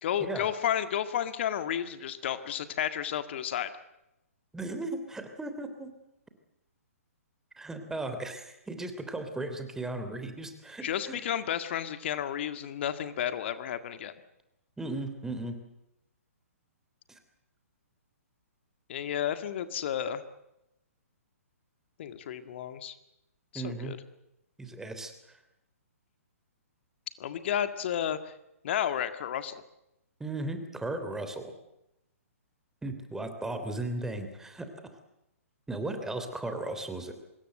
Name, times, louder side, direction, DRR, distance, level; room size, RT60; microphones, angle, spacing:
voice 1, 0.0-3.7 10.8-14.1 18.9-20.2 22.0-23.0 23.5-24.0 27.2-28.3 28.6-29.6, left 10 dB, 50° left, 10 dB, 1.9 m, -32 dB
voice 2, 4.5-5.9 7.6-11.2 14.8-15.6 17.1-17.2 23.5-24.0 24.6-25.4 30.2-31.5 32.8-34.7 35.7-37.1, right 2 dB, 5° right, 8 dB, 3.4 m, -36 dB
25.5 x 21.5 x 7.9 m, 0.87 s
figure-of-eight pair, 125°, 8 cm